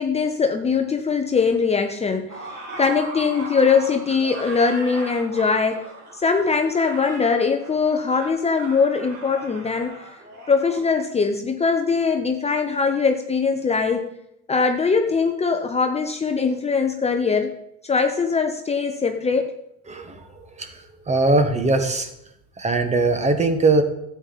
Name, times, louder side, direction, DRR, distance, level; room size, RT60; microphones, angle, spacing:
voice 1, 0.0-2.4 2.8-5.8 6.1-10.0 10.5-14.1 14.5-17.5 17.8-19.5, left 5 dB, 20° left, 5 dB, 0.8 m, -21 dB
sound 1, 2.3-10.8, right 2 dB, 80° right, 5.0 m, -38 dB
voice 2, 19.9-20.2 20.6-20.7 21.1-22.1 22.6-23.8, right 3 dB, 20° right, 8 dB, 1.5 m, -20 dB
12.5 x 8.5 x 4.1 m, 0.80 s
hypercardioid pair, 90°, 34 cm